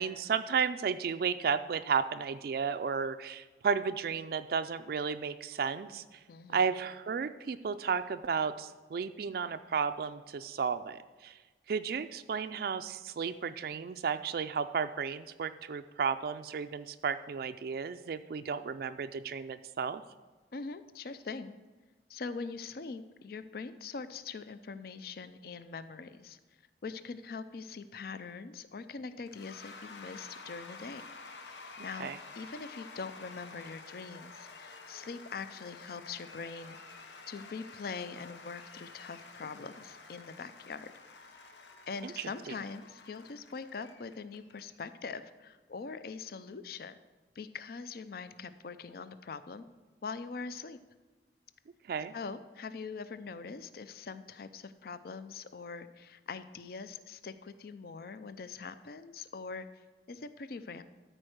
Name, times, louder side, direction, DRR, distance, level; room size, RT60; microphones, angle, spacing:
voice 1, 0.0-6.2 6.5-11.4 11.7-20.0 31.8-32.2 42.0-42.5 51.9-52.1, right 6 dB, 55° right, 10 dB, 0.3 m, -33 dB
voice 2, 6.3-6.7 20.5-21.5 22.1-26.4 26.8-31.0 31.8-40.9 41.9-47.0 47.4-49.6 50.0-50.8 52.1-59.7 60.1-60.8, left 4 dB, 55° left, 12 dB, 0.4 m, -43 dB
Cheering / Applause / Crowd, 29.3-44.9, left 3 dB, 85° left, 0.9 m, -50 dB
13.0 x 4.5 x 6.4 m, 1.3 s
head